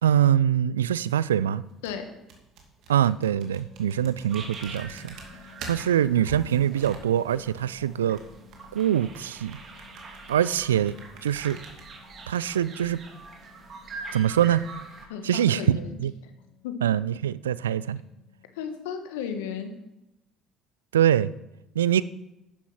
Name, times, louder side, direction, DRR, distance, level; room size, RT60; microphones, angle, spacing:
voice 1, 0.0-1.6 2.9-5.2 5.6-8.2 8.7-9.6 10.3-10.9 11.2-11.6 12.3-13.0 14.1-14.7 15.2-16.1 16.8-18.0 20.9-21.3 21.8-22.0, right 10 dB, 85° right, 0.3 m, -23 dB
sound 1, 1.6-11.9, right 4 dB, 65° right, 2.5 m, -47 dB
sound 2, 3.5-18.8, left 10 dB, 45° left, 2.7 m, -55 dB
sound 3, 4.3-15.1, right 4 dB, 45° right, 2.7 m, -44 dB
voice 2, 15.1-16.0 16.6-16.7 18.5-19.7, left 7 dB, 75° left, 1.4 m, -34 dB
12.0 x 9.9 x 5.9 m
hypercardioid pair, 55°, 0 cm